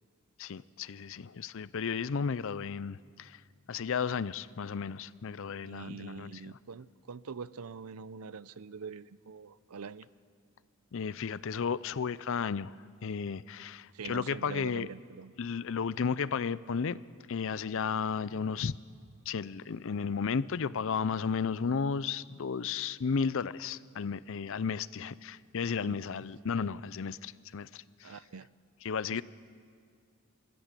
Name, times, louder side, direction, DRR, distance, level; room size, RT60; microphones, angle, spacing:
voice 1, 0.4-3.4 3.7-6.3 10.9-12.7 13.0-14.9 15.4-17.0 17.3-18.8 19.3-28.1 28.8-29.2, left 6 dB, 60° left, 18 dB, 0.5 m, -33 dB
voice 2, 5.6-10.1 13.9-15.3 25.8-26.3 28.0-28.5 29.1-29.2, right 5 dB, 85° right, 17 dB, 0.6 m, -44 dB
27.0 x 14.0 x 8.3 m, 2.1 s
head